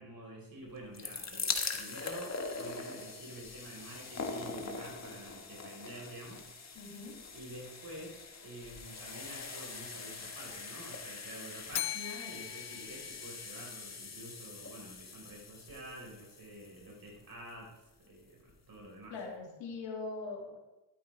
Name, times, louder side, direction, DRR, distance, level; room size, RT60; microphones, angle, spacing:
voice 1, 0.0-6.4 7.3-8.2 8.4-17.8 18.0-19.1, right 1 dB, 50° right, -1 dB, 4.1 m, -48 dB
sound 1, 0.7-17.7 18.5-18.6 18.8-18.9, left 4 dB, 35° left, 1.5 m, -42 dB
voice 2, 6.7-7.2 19.1-20.6, left 3 dB, 90° left, 0 dB, 2.3 m, -41 dB
Bell, 11.7-13.9, left 15 dB, 60° left, 0.5 m, -40 dB
13.0 x 9.8 x 3.3 m, 1.0 s
cardioid pair, 65°, 43 cm